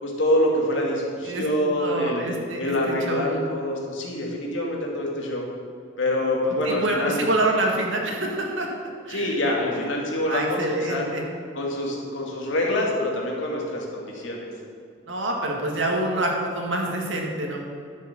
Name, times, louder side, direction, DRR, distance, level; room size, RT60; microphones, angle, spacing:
voice 1, 0.0-2.2 2.6-5.4 6.0-7.3 9.1-11.1 11.5-14.5, left 1 dB, 65° left, -1 dB, 2.3 m, -25 dB
voice 2, 1.8-3.4 6.6-8.7 9.1-9.3 9.7-9.9 10.3-11.2 15.1-17.6, right 1 dB, 70° right, 0 dB, 2.0 m, -26 dB
12.5 x 7.0 x 6.1 m, 2.3 s
head